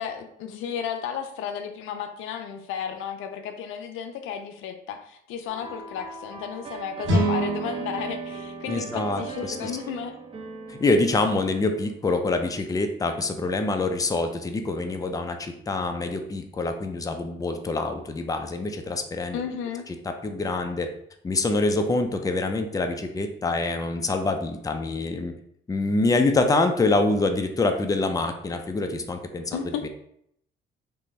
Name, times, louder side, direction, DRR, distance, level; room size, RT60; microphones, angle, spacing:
voice 1, 0.0-10.1 19.3-19.9 29.5-29.9, left 7 dB, 90° left, 7 dB, 0.4 m, -33 dB
sound 1, 5.5-12.2, right 5 dB, 30° right, 0.6 m, -40 dB
sound 2, 7.0-10.4, right 1 dB, 80° right, 1.4 m, -29 dB
voice 2, 8.7-9.7 10.7-19.4 20.2-20.9 21.2-25.3 25.7-29.9, left 3 dB, 20° left, 5 dB, 0.4 m, -25 dB
3.3 x 2.6 x 3.1 m, 0.71 s
cardioid pair, 90°, 20 cm